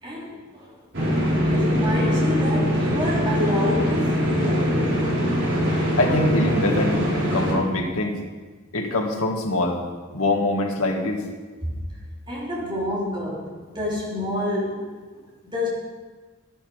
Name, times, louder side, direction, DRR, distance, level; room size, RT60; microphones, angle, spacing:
voice 1, 0.0-0.7 1.5-5.1 11.6-11.7 12.3-14.9 15.2-15.7, left 1 dB, 20° right, -5 dB, 3.5 m, -28 dB
sound 1, 0.9-7.5, equal, 60° right, 4.1 m, -22 dB
voice 2, 6.0-8.2 8.7-9.8 10.1-11.2, left 2 dB, 85° left, 1 dB, 1.9 m, -23 dB
12.5 x 11.5 x 5.0 m, 1.4 s
head